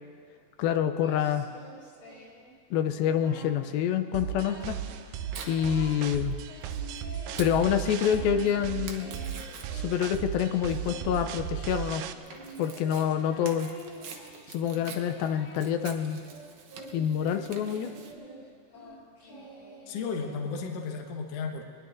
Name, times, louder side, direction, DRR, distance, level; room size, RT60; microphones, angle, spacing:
voice 1, 0.6-1.5 2.7-4.8 5.5-6.4 7.4-9.1 9.7-12.0 12.6-13.7 14.5-16.2 16.9-17.9, left 9 dB, 85° left, 8 dB, 2.5 m, -27 dB
Singing, 1.0-2.5 2.9-3.7 4.0-4.8 5.2-6.0 6.5-21.0, equal, 25° left, 3.1 m, -48 dB
sound 1, 4.1-12.1, right 9 dB, 85° right, 1.8 m, -36 dB
Tearing, 4.6-18.1, right 5 dB, 65° right, 2.2 m, -47 dB
voice 2, 19.9-21.6, left 5 dB, 60° left, 2 dB, 2.0 m, -34 dB
24.0 x 21.0 x 2.6 m, 2.2 s
omnidirectional pair, 4.1 m